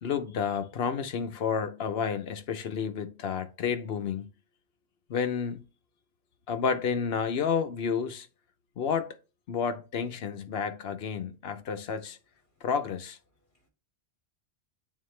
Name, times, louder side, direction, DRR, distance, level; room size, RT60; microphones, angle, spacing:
voice 1, 0.0-4.3 5.1-5.6 6.5-8.3 8.8-9.1 9.5-12.2 12.6-13.2, left 6 dB, 70° left, 1.0 m, -30 dB
voice 2, 13.3-13.7, left 1 dB, 50° left, 2.4 m, -73 dB
8.6 x 3.7 x 3.2 m
omnidirectional pair, 1.1 m